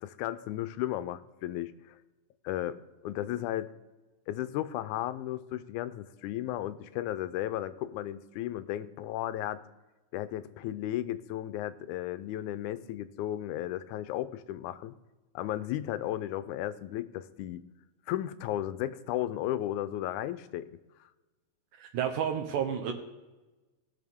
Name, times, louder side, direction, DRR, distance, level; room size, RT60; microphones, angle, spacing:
voice 1, 0.0-2.0 2.4-2.8 3.0-3.7 4.3-9.6 10.1-14.9 15.4-17.6 18.1-20.8, left 13 dB, 80° left, 13 dB, 2.0 m, -34 dB
voice 2, 21.8-22.9, right 8 dB, 85° right, 3 dB, 2.4 m, -31 dB
18.5 x 6.4 x 3.5 m, 1.1 s
omnidirectional pair, 3.5 m